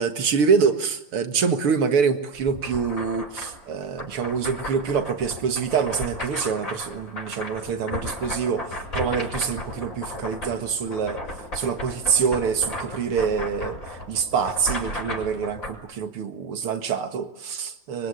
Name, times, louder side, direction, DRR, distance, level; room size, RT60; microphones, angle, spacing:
voice 1, 0.0-11.2 11.5-18.1, right 6 dB, 80° right, 8 dB, 2.7 m, -25 dB
sound 1, 2.4-15.7, left 1 dB, 35° left, 6.0 m, -35 dB
24.5 x 24.0 x 9.9 m, 0.83 s
omnidirectional pair, 2.4 m